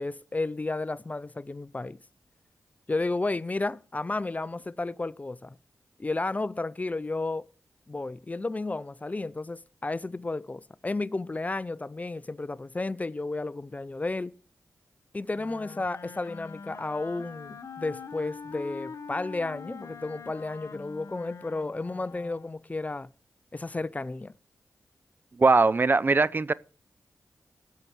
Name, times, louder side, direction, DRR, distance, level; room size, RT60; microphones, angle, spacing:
voice 1, 0.0-2.0 2.9-5.6 6.0-7.5 7.9-14.3 15.1-23.1 23.5-24.3, left 2 dB, 30° left, 0.4 m, -32 dB
Wind instrument woodwind instrument, 15.3-22.7, left 5 dB, 70° left, 0.9 m, -44 dB
voice 2, 25.4-26.5, right 3 dB, 40° right, 0.4 m, -21 dB
18.0 x 6.7 x 4.5 m
cardioid pair, 50°, 5 cm